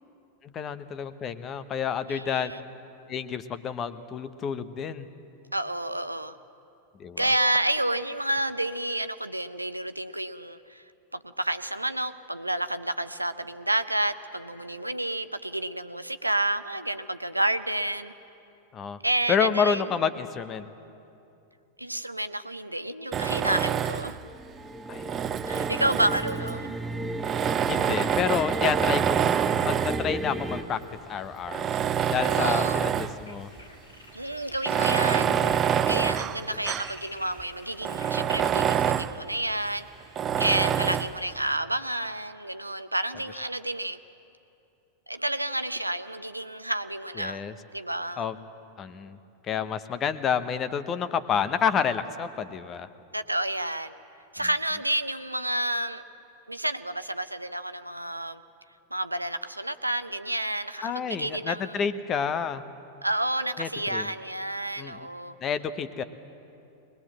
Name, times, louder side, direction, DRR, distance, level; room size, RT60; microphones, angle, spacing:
voice 1, 0.4-2.5 3.1-5.1 7.0-7.2 18.7-19.0 19.3-20.6 24.9-25.0 25.8-25.9 27.7-31.7 32.1-33.5 35.1-35.7 40.3-40.4 47.2-47.5 48.2-48.4 48.8-49.2 49.4-52.9 60.8-62.6 63.6-64.1 64.8-65.1 65.4-66.0, left 7 dB, 30° left, 12 dB, 1.0 m, -29 dB
voice 2, 2.1-2.6 5.5-6.3 7.2-10.8 11.1-18.1 19.0-19.9 21.8-24.3 25.5-26.8 32.2-32.8 34.1-35.3 35.9-39.9 40.4-44.0 45.1-47.4 47.7-48.2 53.1-53.9 54.3-56.0 56.5-58.4 58.9-61.8 63.0-65.4, right 1 dB, 85° right, 12 dB, 0.6 m, -30 dB
Tools, 23.1-24.2 24.9-26.5 27.2-30.1 30.8-30.9 31.4-33.2 33.6-33.7 34.5-37.0 37.4-37.5 37.8-39.2 40.2-41.2, right 9 dB, 25° right, 0.5 m, -26 dB
sound 1, 24.2-30.6, right 2 dB, 5° right, 1.1 m, -33 dB
sound 2, 31.7-38.2, left 2 dB, 75° left, 3.0 m, -49 dB
21.0 x 20.5 x 7.6 m, 2.7 s
figure-of-eight pair, 90°, 0 cm